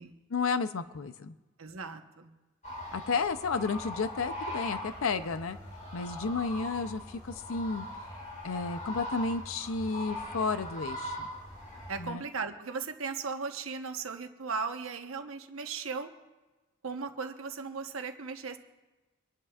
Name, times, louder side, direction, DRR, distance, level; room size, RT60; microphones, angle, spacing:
voice 1, 0.3-1.3 2.9-5.6 5.9-7.9 8.4-11.3 12.0-12.2, left 4 dB, 85° left, 11 dB, 0.6 m, -32 dB
voice 2, 1.6-2.3 11.9-16.1 16.8-18.6, right 5 dB, 85° right, 5 dB, 1.1 m, -37 dB
sound 1, 2.6-12.1, left 1 dB, 35° left, 2.7 m, -41 dB
26.5 x 11.0 x 2.4 m, 1.2 s
head